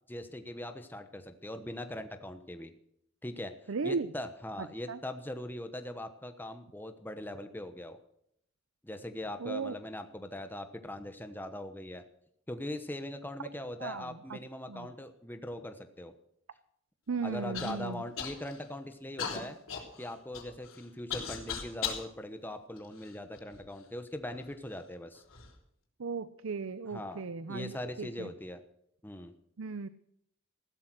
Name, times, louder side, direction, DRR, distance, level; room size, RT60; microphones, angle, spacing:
voice 1, 0.1-2.7 3.2-3.5 3.8-8.0 8.8-12.0 12.5-16.1 17.2-19.6 20.0-25.2 26.9-28.6 29.0-29.3, left 1 dB, 10° left, 8 dB, 1.0 m, -41 dB
voice 2, 3.7-4.1 4.9-5.0 9.4-9.7 13.8-14.4 14.7-14.9 17.1-18.0 26.0-28.3 29.6-29.9, right 4 dB, 80° right, 14 dB, 0.6 m, -36 dB
Human voice / Cough, 17.5-17.7 18.2-18.7 19.2-22.1 22.8-23.6 24.3-24.4 25.1-25.5, left 7 dB, 80° left, 3.6 m, -38 dB
15.5 x 12.5 x 6.2 m, 0.72 s
head